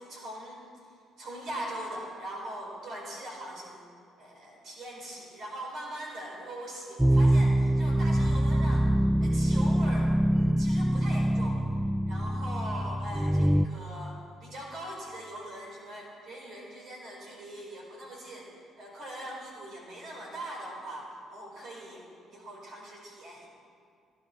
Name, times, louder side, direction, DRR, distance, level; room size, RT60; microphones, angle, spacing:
voice 1, 0.1-0.6 1.2-3.9 4.2-8.9 9.2-11.6 12.1-18.5 18.8-23.5, right 1 dB, 65° right, -2 dB, 4.8 m, -41 dB
sound 1, 7.0-13.7, right 1 dB, 5° right, 0.4 m, -24 dB
16.5 x 12.0 x 6.2 m, 2.4 s
hypercardioid pair, 50°, 0 cm